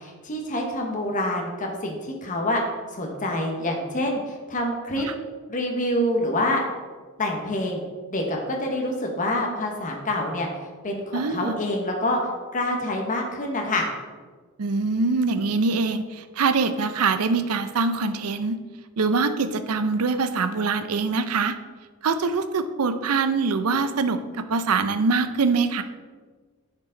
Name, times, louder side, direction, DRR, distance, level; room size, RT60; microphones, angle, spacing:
voice 1, 0.0-2.6 2.9-5.1 5.5-6.6 7.2-7.8 8.1-10.5 10.8-12.2 12.5-13.9, left 1 dB, 35° left, 1 dB, 1.0 m, -26 dB
voice 2, 11.1-11.6 14.6-18.6 19.0-21.6 22.0-25.8, right 4 dB, 80° right, 10 dB, 0.5 m, -24 dB
10.5 x 4.6 x 3.9 m, 1.4 s
head